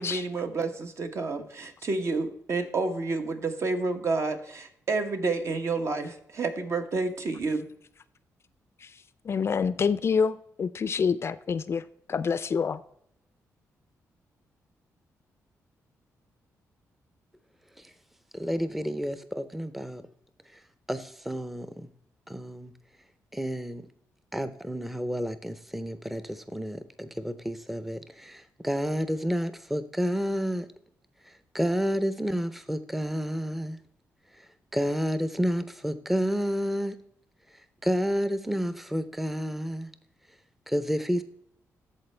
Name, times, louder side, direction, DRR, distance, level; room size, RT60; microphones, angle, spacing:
voice 1, 0.0-7.7, right 3 dB, 55° right, 1.1 m, -29 dB
voice 2, 9.3-12.8, left 6 dB, 45° left, 0.4 m, -27 dB
voice 3, 18.3-20.0 20.5-20.6 20.9-21.9 22.3-22.7 23.3-23.8 24.3-30.7 31.2-33.8 34.3-37.0 37.8-39.9 40.7-41.2, equal, 5° right, 0.6 m, -30 dB
13.0 x 4.3 x 3.3 m
cardioid pair, 75°, 6 cm